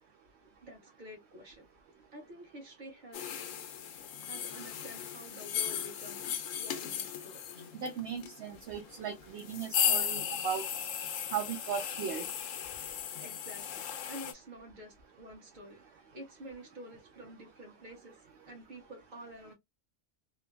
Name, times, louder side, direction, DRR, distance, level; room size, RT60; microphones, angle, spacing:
voice 1, 0.6-1.6 2.1-3.4 4.3-6.2 6.5-7.4 13.2-15.8 16.1-19.5, equal, 40° right, 1.2 m, -49 dB
sound 1, 3.1-14.3, left 9 dB, 85° left, 1.0 m, -36 dB
voice 2, 7.8-10.6 11.3-12.2, right 7 dB, 65° right, 0.8 m, -37 dB
3.1 x 2.1 x 2.3 m
omnidirectional pair, 1.3 m